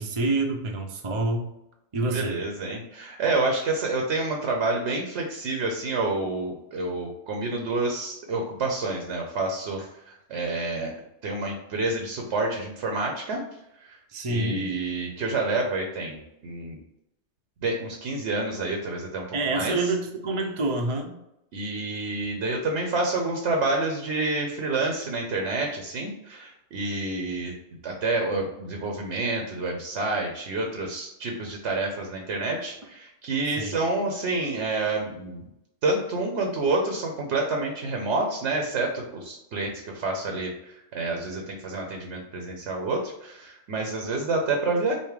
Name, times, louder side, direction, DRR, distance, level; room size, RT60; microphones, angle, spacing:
voice 1, 0.0-1.5 1.9-2.4 14.1-14.7 19.3-21.2 33.6-33.8, right 2 dB, 35° right, 2 dB, 0.5 m, -27 dB
voice 2, 2.1-10.0 10.3-10.9 11.2-13.4 13.8-14.0 14.3-16.8 17.6-19.9 21.5-27.5 27.8-35.4 35.8-44.9, right 2 dB, 65° right, 2 dB, 1.0 m, -28 dB
5.5 x 2.0 x 4.8 m, 0.84 s
omnidirectional pair, 1.3 m